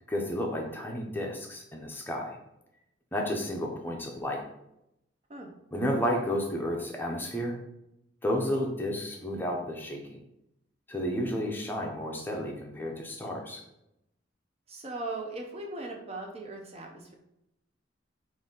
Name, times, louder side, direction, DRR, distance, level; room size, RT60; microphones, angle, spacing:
voice 1, 0.1-2.4 3.1-4.4 5.7-7.6 8.2-10.2 10.9-13.6, equal, 10° left, 0 dB, 0.6 m, -32 dB
voice 2, 14.7-17.1, right 2 dB, 30° right, 2 dB, 0.6 m, -38 dB
3.9 x 2.6 x 3.8 m, 0.83 s
head